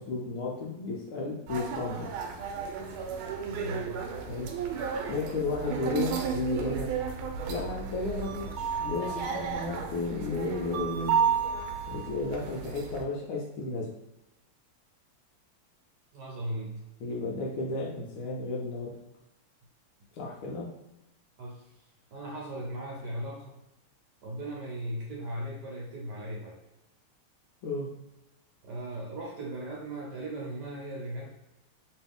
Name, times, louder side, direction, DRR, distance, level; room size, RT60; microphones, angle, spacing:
voice 1, 0.0-2.1 4.3-4.5 5.1-6.9 7.5-11.1 11.9-13.9 17.0-18.9 20.1-20.7 27.6-27.9, left 3 dB, 80° left, -3 dB, 1.5 m, -33 dB
sound 1, 1.5-13.0, right 7 dB, 80° right, 1.4 m, -33 dB
voice 2, 3.5-4.1 16.1-16.8 21.4-21.7 22.1-23.6 24.2-26.6 28.6-31.2, right 1 dB, 65° right, -3 dB, 1.2 m, -37 dB
3.2 x 3.1 x 3.4 m, 0.97 s
omnidirectional pair, 2.3 m